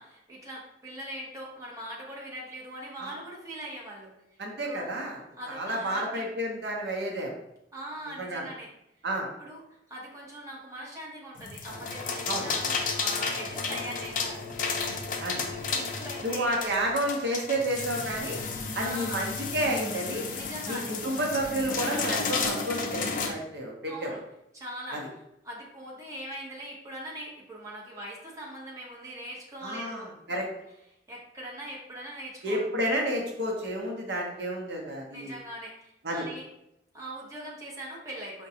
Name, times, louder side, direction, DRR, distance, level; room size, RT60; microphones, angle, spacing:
voice 1, 0.0-4.1 4.6-4.9 5.4-6.3 7.7-8.7 9.4-14.5 14.8-15.0 15.5-16.6 18.8-19.2 20.3-20.9 23.9-24.2 24.5-30.1 30.3-30.4 31.1-32.6 35.1-36.5 36.9-38.5, right 1 dB, 20° right, -4 dB, 0.9 m, -41 dB
voice 2, 4.4-5.2 5.5-7.3 8.2-8.4 9.0-9.3 12.3-12.5 15.2-15.4 16.2-18.4 18.7-20.3 20.7-24.1 24.9-25.1 29.6-30.5 32.4-35.3 36.0-36.2, right 1 dB, 70° right, 0 dB, 0.7 m, -30 dB
sound 1, 11.4-23.3, left 4 dB, 50° left, 0.4 m, -32 dB
4.8 x 2.2 x 2.7 m, 0.83 s
head